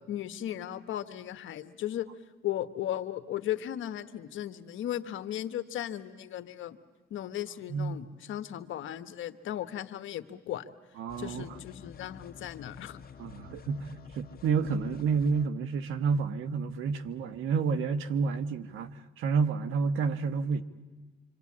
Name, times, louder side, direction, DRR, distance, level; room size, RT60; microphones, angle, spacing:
voice 1, 0.1-2.1 2.4-6.8 7.1-10.7 11.2-13.0, left 12 dB, 80° left, 1.3 m, -36 dB
voice 2, 11.0-11.5 13.2-20.6, right 5 dB, 85° right, 1.3 m, -30 dB
sound 1, 11.1-15.5, left 7 dB, 50° left, 1.6 m, -49 dB
26.5 x 25.0 x 8.6 m
cardioid pair, 90°, 20 cm